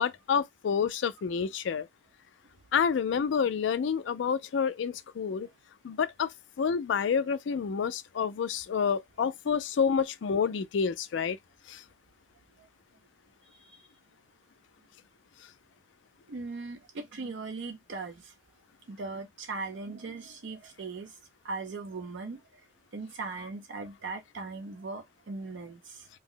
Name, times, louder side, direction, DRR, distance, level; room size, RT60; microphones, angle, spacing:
voice 1, 0.0-1.9 2.7-5.5 5.8-6.3 6.6-11.4 11.7-11.8, left 6 dB, 75° left, 0.4 m, -28 dB
voice 2, 13.5-13.9 16.3-18.3 18.9-21.2 21.4-22.6 22.9-26.1, right 3 dB, 75° right, 0.5 m, -39 dB
2.7 x 2.0 x 3.7 m
head